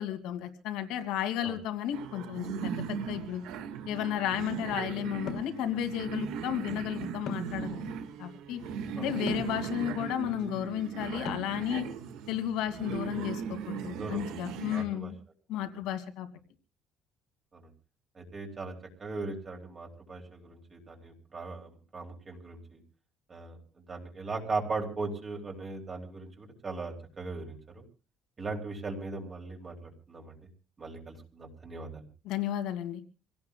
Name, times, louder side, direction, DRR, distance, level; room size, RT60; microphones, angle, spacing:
voice 1, 0.0-3.4 3.9-7.9 8.2-8.6 9.0-11.9 12.3-15.1 15.5-16.3 32.2-33.0, left 11 dB, 80° left, 7 dB, 2.5 m, -33 dB
sound 1, 1.9-14.8, right 7 dB, 80° right, 1.7 m, -38 dB
sound 2, 5.3-5.6 7.3-7.6 9.3-9.6 11.2-11.6, left 4 dB, 50° left, 2.5 m, -37 dB
voice 2, 14.0-15.1 17.5-17.7 18.1-22.8 23.3-23.6 23.9-27.8 28.4-30.4 30.8-32.0, right 3 dB, 25° right, 1 dB, 2.9 m, -39 dB
28.0 x 17.5 x 2.3 m, 0.33 s
cardioid pair, 170°, 0 cm